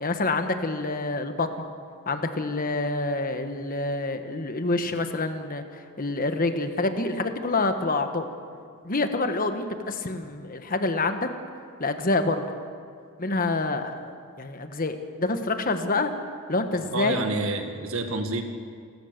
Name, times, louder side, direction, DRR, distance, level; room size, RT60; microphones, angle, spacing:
voice 1, 0.0-1.5 2.1-8.3 8.8-11.3 11.8-12.5 13.2-16.1 16.5-17.2, left 2 dB, 40° left, 7 dB, 1.4 m, -27 dB
voice 2, 16.9-18.4, right 2 dB, 70° right, 6 dB, 1.9 m, -28 dB
28.5 x 14.0 x 6.7 m, 2.2 s
head